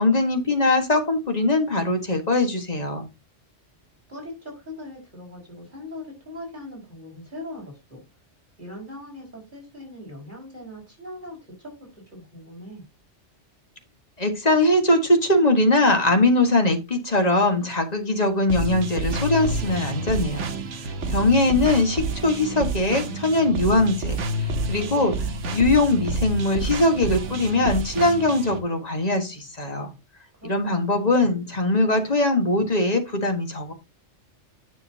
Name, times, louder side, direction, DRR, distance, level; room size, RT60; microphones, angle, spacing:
voice 1, 0.0-3.1 14.2-20.5 20.8-25.1 25.5-29.9 30.4-33.7, left 2 dB, 35° left, 5 dB, 1.6 m, -21 dB
voice 2, 4.1-8.0 8.6-12.8 30.4-31.3, left 1 dB, 40° right, -2 dB, 4.8 m, -40 dB
sound 1, 18.5-28.6, right 2 dB, 85° right, 1.3 m, -29 dB
9.9 x 6.5 x 2.8 m, 0.25 s
omnidirectional pair, 1.2 m